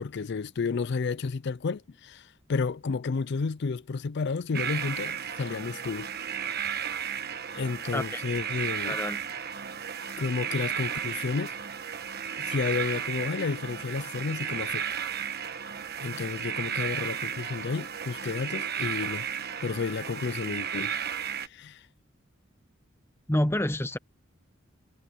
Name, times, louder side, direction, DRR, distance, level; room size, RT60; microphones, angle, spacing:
voice 1, 0.0-6.1 6.4-6.6 7.5-9.0 10.2-11.5 12.4-14.9 16.0-19.3 19.6-21.0 21.4-21.8, left 4 dB, 55° left, 0.5 m, -31 dB
sound 1, 4.5-21.5, right 8 dB, 50° right, 1.4 m, -34 dB
voice 2, 8.8-9.2 23.3-24.0, left 1 dB, 10° left, 1.0 m, -28 dB
head